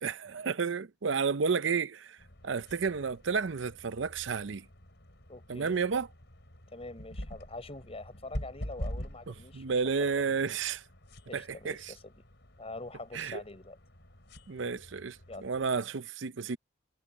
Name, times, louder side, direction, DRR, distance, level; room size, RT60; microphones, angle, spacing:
voice 1, 0.0-2.2 2.4-4.7 5.5-6.1 9.3-10.8 11.3-11.9 13.1-13.4 14.5-16.6, right 5 dB, 65° right, 0.6 m, -31 dB
sound 1, 2.2-15.8, equal, 60° left, 5.2 m, -46 dB
voice 2, 5.3-5.8 6.7-9.8 11.3-12.1 12.6-13.8 15.3-15.5, left 2 dB, 30° left, 5.5 m, -44 dB
head